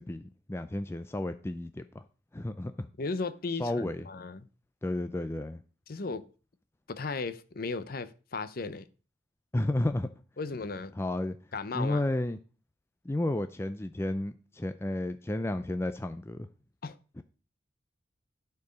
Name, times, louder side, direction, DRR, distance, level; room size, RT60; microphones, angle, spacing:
voice 1, 0.0-2.0 2.3-2.9 3.6-4.1 4.8-5.6 9.5-10.1 11.0-11.4 11.7-12.4 13.0-16.5 17.2-17.3, left 1 dB, 15° left, 0.4 m, -32 dB
voice 2, 3.0-4.5 5.9-6.2 6.9-8.8 10.4-10.9 11.5-12.0 16.8-17.0, left 4 dB, 50° left, 0.6 m, -35 dB
11.5 x 4.6 x 5.1 m
head